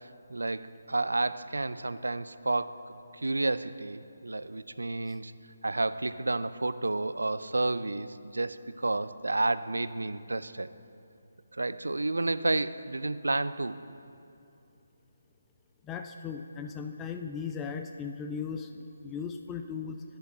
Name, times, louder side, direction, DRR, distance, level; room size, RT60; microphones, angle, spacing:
voice 1, 0.0-2.8 3.1-5.3 5.6-10.7 11.5-13.8, right 2 dB, 75° right, 14 dB, 0.3 m, -31 dB
voice 2, 15.8-20.0, left 6 dB, 15° left, 6 dB, 0.3 m, -37 dB
8.5 x 5.8 x 7.8 m, 2.6 s
figure-of-eight pair, 150°, 0 cm